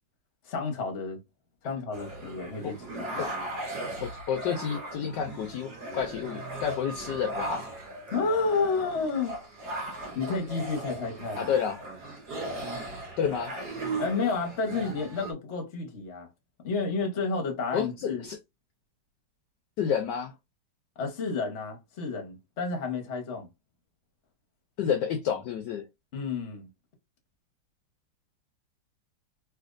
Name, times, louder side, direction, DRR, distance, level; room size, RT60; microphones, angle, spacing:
voice 1, 0.5-1.2 1.6-3.3 8.1-9.3 10.1-11.5 14.0-16.3 16.6-18.2 21.0-23.5 26.1-26.7, left 4 dB, 45° left, 1.0 m, -31 dB
sound 1, 1.9-15.3, right 2 dB, 55° right, 1.7 m, -38 dB
voice 2, 4.0-7.6 11.4-11.8 13.2-13.5 17.7-18.4 19.8-20.3 24.8-25.9, left 8 dB, 70° left, 1.1 m, -30 dB
3.3 x 3.1 x 2.5 m
omnidirectional pair, 2.2 m